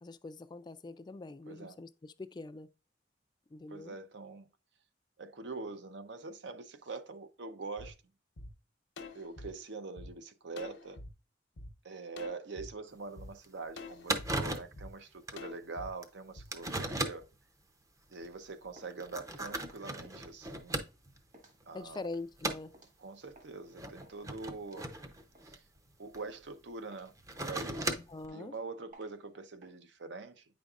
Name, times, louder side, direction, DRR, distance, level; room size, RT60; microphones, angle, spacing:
voice 1, 0.0-2.7 3.5-3.9 21.7-22.8 28.1-28.5, left 3 dB, 25° left, 0.3 m, -44 dB
voice 2, 1.5-1.8 3.7-4.5 5.2-8.0 9.1-11.0 11.8-17.3 18.1-20.9 21.6-22.0 23.0-24.9 25.4-25.6 26.0-27.1 27.4-28.0 28.3-30.5, right 3 dB, 70° right, 0.7 m, -44 dB
sound 1, 7.8-7.9 8.4-8.5 9.0-10.1 10.6-11.1 11.6-11.7 12.2-12.7 13.2-13.3 13.8-14.3 14.8-14.9 15.4-15.9 16.4-16.5, left 2 dB, 75° left, 0.9 m, -46 dB
sound 2, 12.9-13.0 13.4-13.5 13.8-13.9 14.1-14.8 15.3-15.4 16.0-16.1 16.5-17.3 18.1-18.3 18.9-21.2 21.6-22.0 22.4-22.7 23.7-26.2 27.1-28.3, right 2 dB, 20° right, 0.6 m, -37 dB
sound 3, 18.8-23.6 24.0-25.8 26.1-26.5 26.9-29.7, right 1 dB, 45° right, 1.5 m, -60 dB
8.8 x 5.2 x 2.4 m
head